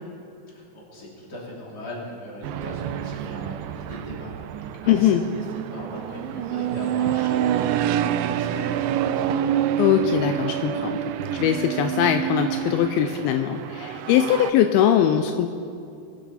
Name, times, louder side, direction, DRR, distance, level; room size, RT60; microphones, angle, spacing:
voice 1, 0.5-9.3, left 1 dB, 25° left, -4 dB, 3.1 m, -39 dB
sound 1, 2.4-14.5, right 10 dB, 90° right, 1.9 m, -27 dB
voice 2, 4.9-5.2 9.8-11.0 11.3-15.5, left 10 dB, 80° left, 7 dB, 2.4 m, -21 dB
22.0 x 11.5 x 4.2 m, 2.5 s
omnidirectional pair, 4.5 m